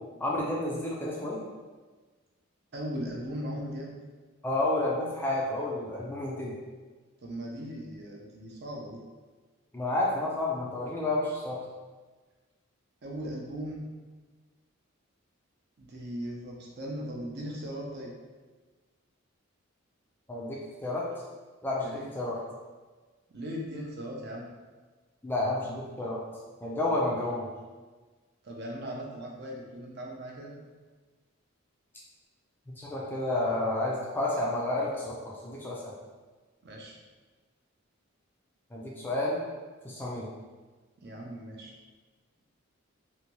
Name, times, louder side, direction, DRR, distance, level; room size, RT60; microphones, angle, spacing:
voice 1, 0.2-1.4 4.4-6.5 9.7-11.6 20.3-21.0 21.6-22.4 25.2-26.2 26.6-27.5 32.7-35.2 35.4-35.9 38.7-39.4 39.8-40.3, left 2 dB, 10° left, -5 dB, 0.3 m, -30 dB
voice 2, 2.7-3.9 7.2-9.0 13.0-13.8 15.8-18.1 21.8-22.1 23.3-24.5 28.4-30.5 36.6-37.0 41.0-41.7, equal, 50° right, -1 dB, 0.5 m, -38 dB
2.7 x 2.2 x 2.9 m, 1.3 s
head